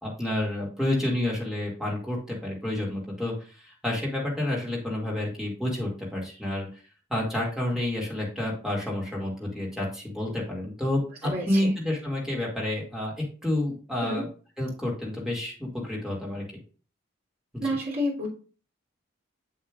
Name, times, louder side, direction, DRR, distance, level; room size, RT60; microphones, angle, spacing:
voice 1, 0.0-6.7 7.1-14.3 14.6-16.4 17.5-17.7, left 1 dB, 5° right, -3 dB, 2.2 m, -29 dB
voice 2, 11.2-11.7 14.0-14.2 17.6-18.3, equal, 50° right, -3 dB, 3.1 m, -29 dB
7.3 x 7.2 x 2.4 m, 0.38 s
head